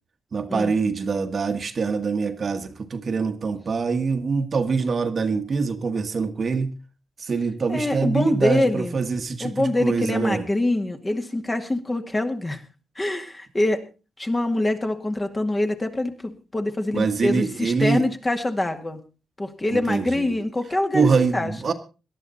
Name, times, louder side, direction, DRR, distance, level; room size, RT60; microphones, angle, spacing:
voice 1, 0.3-6.7 7.2-10.4 16.9-18.1 19.7-20.4 20.9-21.7, right 5 dB, 45° right, 1.5 m, -24 dB
voice 2, 7.7-9.0 9.4-12.6 13.0-13.8 14.2-19.0 19.4-21.5, left 1 dB, 20° left, 2.1 m, -25 dB
18.5 x 12.0 x 4.2 m
cardioid pair, 100°, 0 cm